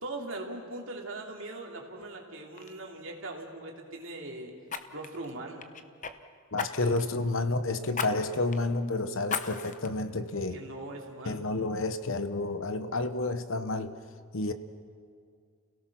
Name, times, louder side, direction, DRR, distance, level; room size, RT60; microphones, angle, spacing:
voice 1, 0.0-4.5 4.9-5.6 10.5-11.4, right 2 dB, 60° right, 0 dB, 3.0 m, -40 dB
Fire, 2.0-2.2 2.6-2.8 4.7-6.1 6.6-7.1 7.9-8.1 8.5-8.6 9.3-9.9 10.4-10.5, left 5 dB, 35° left, 0.9 m, -36 dB
voice 2, 6.5-10.6 11.2-14.0 14.3-14.5, left 2 dB, 65° left, 10 dB, 1.1 m, -30 dB
29.5 x 17.5 x 6.1 m, 2.2 s
head